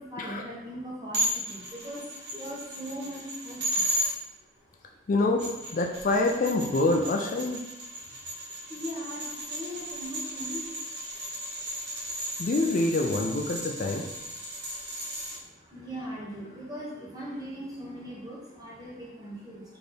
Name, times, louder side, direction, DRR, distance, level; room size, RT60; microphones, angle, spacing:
voice 1, 0.0-2.0 2.3-3.6 8.7-10.6 15.7-19.6, equal, 20° right, -6 dB, 1.3 m, -39 dB
sound 1, 1.1-4.1 5.2-15.4, equal, 85° right, 1.3 m, -35 dB
voice 2, 5.1-7.6 12.4-14.1, left 2 dB, 45° left, 3 dB, 0.4 m, -26 dB
3.5 x 3.4 x 4.1 m, 1.0 s
head